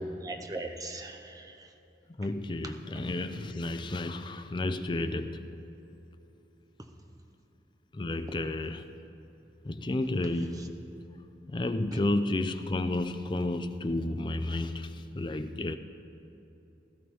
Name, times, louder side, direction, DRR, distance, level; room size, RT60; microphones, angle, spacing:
voice 1, 0.0-1.7 2.6-3.0 10.5-10.7 11.9-12.0, right 1 dB, 20° right, 4 dB, 0.7 m, -40 dB
voice 2, 2.2-5.5 7.9-8.9 9.6-11.1 11.5-15.8, left 2 dB, 25° left, 9 dB, 0.4 m, -32 dB
16.5 x 13.0 x 3.5 m, 2.9 s
head